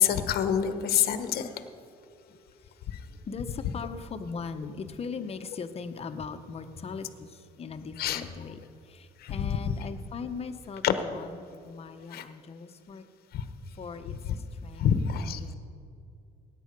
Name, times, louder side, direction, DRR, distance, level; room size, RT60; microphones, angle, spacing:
voice 1, 0.0-1.5 8.0-8.2 9.2-9.3 10.8-10.9 12.1-12.2 13.3-13.4 14.8-15.5, left 9 dB, 65° left, 9 dB, 1.0 m, -26 dB
voice 2, 2.3-2.7 3.1-13.0 13.7-15.5, left 5 dB, 35° left, 9 dB, 0.9 m, -40 dB
16.5 x 9.2 x 5.3 m, 2.6 s
cardioid pair, 110°, 17 cm